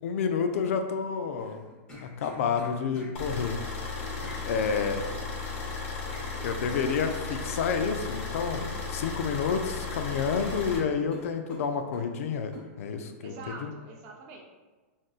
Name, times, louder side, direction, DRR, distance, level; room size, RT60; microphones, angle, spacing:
voice 1, 0.0-1.6 2.0-3.6 4.5-5.1 6.4-13.3 13.6-13.7, left 6 dB, 70° left, 7 dB, 0.4 m, -29 dB
sound 1, 1.4-3.1 4.2-4.4 6.1-6.3 8.3-8.6 8.9-9.6 9.9-10.0 10.4-12.1 12.5-12.7, left 1 dB, 15° left, 0.8 m, -47 dB
sound 2, 3.1-10.8, left 4 dB, 45° left, 0.8 m, -35 dB
voice 2, 13.2-14.4, right 3 dB, 35° right, 0 dB, 0.5 m, -44 dB
3.6 x 2.6 x 2.3 m, 1.3 s
supercardioid pair, 160°, 8 cm